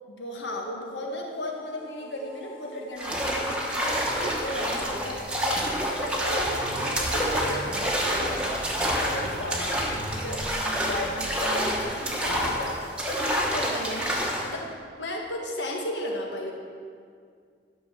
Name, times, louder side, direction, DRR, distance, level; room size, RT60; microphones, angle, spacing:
voice 1, 0.1-8.4 8.8-9.8 10.2-14.2 14.4-16.5, left 1 dB, 85° left, 1 dB, 1.6 m, -35 dB
sound 1, 1.1-11.7, right 1 dB, 55° left, 2.0 m, -43 dB
sound 2, 3.0-14.5, equal, 5° right, 1.1 m, -28 dB
sound 3, 6.4-11.7, right 2 dB, 60° right, 0.6 m, -42 dB
11.5 x 6.3 x 6.2 m, 2.1 s
head